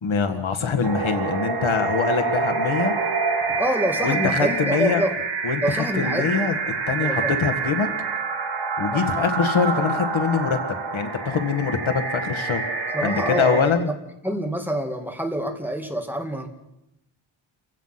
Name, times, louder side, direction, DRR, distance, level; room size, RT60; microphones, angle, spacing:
voice 1, 0.0-2.9 4.0-5.0 5.4-5.6 6.0-6.6 6.9-7.9 8.8-10.6 10.9-12.6 13.0-13.9, left 5 dB, 70° left, 5 dB, 1.9 m, -23 dB
sound 1, 0.8-13.6, right 4 dB, 55° right, 3.8 m, -27 dB
voice 2, 3.6-5.2 5.6-6.3 7.0-7.4 8.9-9.1 12.9-14.0 14.2-16.5, equal, 5° right, 3 dB, 2.2 m, -26 dB
29.0 x 16.0 x 5.9 m, 0.86 s
wide cardioid pair, 140°, 49 cm